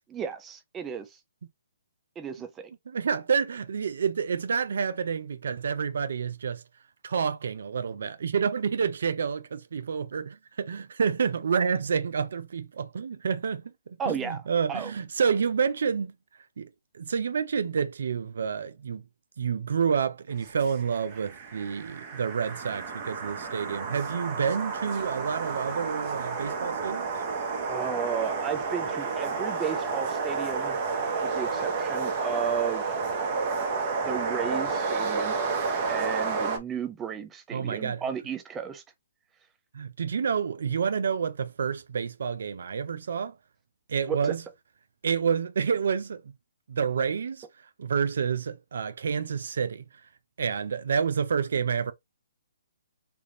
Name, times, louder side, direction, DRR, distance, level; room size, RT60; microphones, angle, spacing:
voice 1, 0.1-1.2 2.2-2.7 14.0-14.4 14.7-14.9 27.7-30.8 31.2-33.0 34.0-35.4 35.9-38.8 44.1-44.3, right 7 dB, 15° right, 0.6 m, -34 dB
voice 2, 2.9-6.6 7.0-16.1 16.6-16.7 16.9-19.0 19.4-27.1 37.5-38.0 39.7-43.3 43.9-44.4 45.0-46.2 46.7-47.5 47.8-49.8 50.4-51.9, right 6 dB, 65° right, 0.4 m, -29 dB
sound 1, 20.4-36.6, right 4 dB, 35° right, 0.9 m, -31 dB
3.4 x 2.4 x 2.8 m
hypercardioid pair, 140°, 0 cm